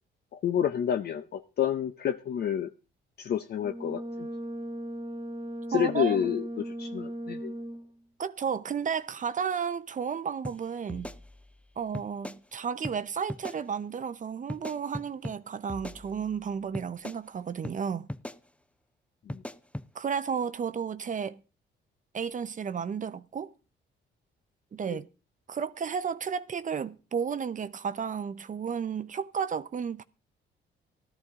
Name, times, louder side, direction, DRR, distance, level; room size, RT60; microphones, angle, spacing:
voice 1, 0.3-2.7 3.2-4.3 5.7-7.5 19.3-19.4 24.9-25.0, left 9 dB, 55° left, 0.7 m, -29 dB
Brass instrument, 3.6-8.0, right 1 dB, 25° right, 1.5 m, -37 dB
voice 2, 5.7-6.2 8.2-11.2 11.8-18.1 19.9-21.4 22.1-23.5 24.7-25.1 25.5-30.0, right 7 dB, 40° right, 0.7 m, -33 dB
sound 1, 10.4-10.6 10.9-11.6 11.9-12.4 12.8-13.0 13.3-13.6 14.5-15.4 15.7-16.4 16.7-17.2 17.6-17.8 18.1-18.4 19.3-19.9, left 1 dB, 5° left, 0.6 m, -39 dB
14.0 x 12.5 x 3.7 m
cardioid pair, 90°, 20 cm